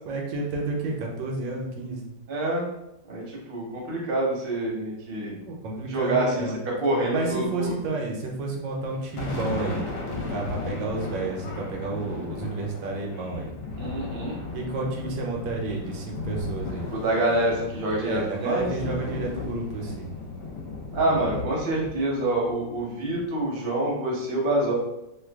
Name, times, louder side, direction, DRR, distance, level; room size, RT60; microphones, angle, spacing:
voice 1, 0.0-2.1 5.5-6.6 7.1-13.5 14.5-16.9 18.0-20.1, right 3 dB, 80° right, -1 dB, 1.3 m, -31 dB
voice 2, 2.3-2.7 3.1-5.3 5.9-7.7 13.8-14.4 16.9-18.7 20.9-24.7, right 1 dB, 40° right, -3 dB, 0.8 m, -26 dB
Thunder, 8.8-23.4, left 3 dB, 70° left, 1.2 m, -35 dB
3.1 x 2.2 x 3.4 m, 0.85 s
omnidirectional pair, 2.0 m